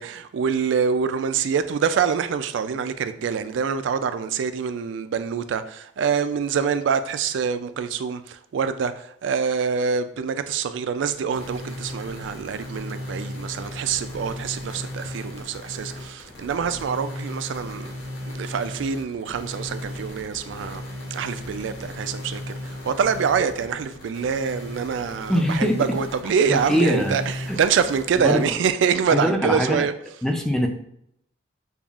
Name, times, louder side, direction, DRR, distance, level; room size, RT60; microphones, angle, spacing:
voice 1, 0.0-17.9 18.3-20.8 21.1-29.9, right 6 dB, 75° right, 0.3 m, -25 dB
sound 1, 11.3-28.5, left 1 dB, 70° left, 0.8 m, -36 dB
voice 2, 25.3-25.8 26.5-27.1 27.5-27.6 28.2-28.4 29.1-29.8 30.2-30.7, equal, 5° left, 0.4 m, -22 dB
6.8 x 2.4 x 2.4 m
head